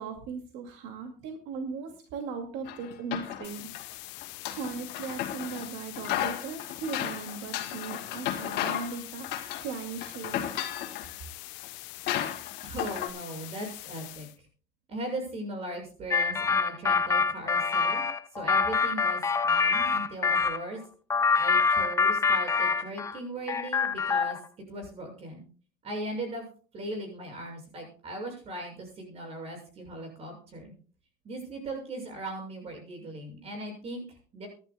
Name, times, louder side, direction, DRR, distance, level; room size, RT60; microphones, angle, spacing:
voice 1, 0.0-4.0 4.5-10.5, right 5 dB, 75° right, 4 dB, 2.3 m, -38 dB
sound 1, 2.7-3.8 4.2-5.7 5.9-9.0 9.2-9.7 10.0-11.1 11.6-11.7 12.1-13.1, left 12 dB, 65° left, 2.3 m, -34 dB
sound 2, 3.4-14.4, left 19 dB, 80° left, 1.0 m, -44 dB
voice 2, 12.6-14.5 14.9-18.0 18.3-20.8 21.3-24.4 24.7-25.4 25.8-26.5 26.7-30.7 31.2-34.5, right 1 dB, 35° right, 3 dB, 6.9 m, -38 dB
sound 3, 16.1-20.6 21.1-23.2 23.5-24.4, left 5 dB, 15° left, 0.6 m, -25 dB
23.5 x 11.5 x 2.3 m, 0.40 s
cardioid pair, 165°, 19 cm